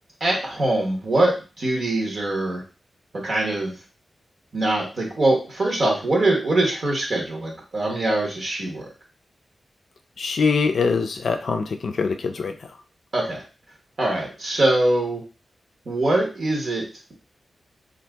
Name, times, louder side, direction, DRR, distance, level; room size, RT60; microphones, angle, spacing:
voice 1, 0.2-2.6 3.1-3.7 4.5-8.9 13.1-13.4 14.0-15.2 15.9-16.9, right 2 dB, 45° right, -1 dB, 0.9 m, -23 dB
voice 2, 10.2-12.8, left 5 dB, 60° left, 5 dB, 0.4 m, -23 dB
2.7 x 2.4 x 3.4 m, 0.33 s
wide cardioid pair, 160°, 0 cm